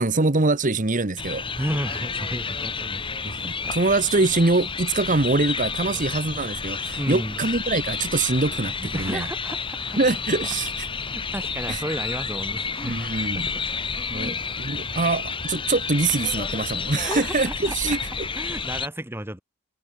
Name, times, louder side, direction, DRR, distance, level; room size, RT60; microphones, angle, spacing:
voice 1, 0.0-1.4 3.2-9.3 10.0-10.9 11.7-11.8 12.8-13.5 14.1-18.3, right 3 dB, 40° right, 1.3 m, -24 dB
sound 1, 1.2-18.9, left 5 dB, 25° left, 1.5 m, -30 dB
voice 2, 1.6-3.0 3.4-3.7 7.0-7.4 8.8-10.0 11.1-13.1 13.9-14.6 17.0-18.0 18.3-19.4, right 1 dB, 10° right, 2.7 m, -33 dB
head